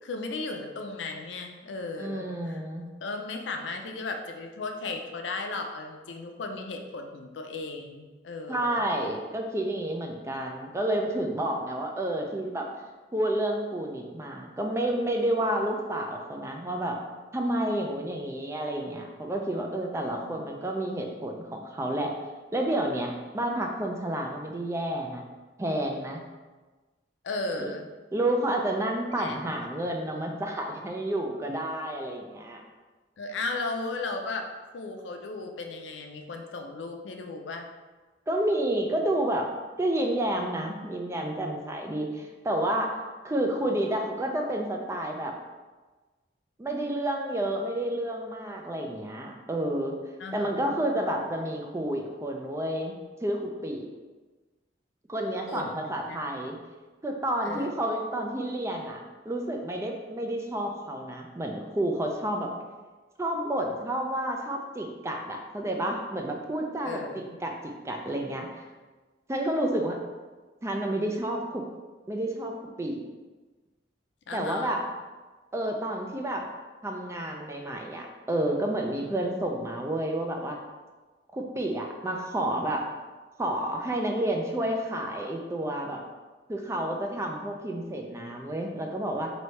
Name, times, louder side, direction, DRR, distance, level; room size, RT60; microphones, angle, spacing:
voice 1, 0.0-2.6 3.0-8.8 20.1-20.4 27.2-27.9 29.2-29.5 33.2-34.5 34.7-37.7 50.2-50.7 55.5-56.2 57.4-57.9 66.8-67.4 74.3-74.8, left 3 dB, 80° left, 4 dB, 0.5 m, -36 dB
voice 2, 2.0-2.9 8.5-12.7 13.1-17.0 17.3-22.1 22.5-25.2 25.6-26.2 27.6-27.7 28.1-32.6 38.3-39.5 39.8-43.0 43.2-45.4 46.6-50.0 50.3-53.8 55.1-56.6 57.0-59.0 59.3-62.5 63.2-68.6 69.3-70.0 70.6-71.6 72.1-73.0 74.3-74.8 75.5-76.5 76.8-80.6 81.3-82.9 83.4-86.0 86.5-89.3, right 1 dB, 15° right, 2 dB, 0.4 m, -30 dB
3.2 x 2.6 x 4.3 m, 1.3 s
head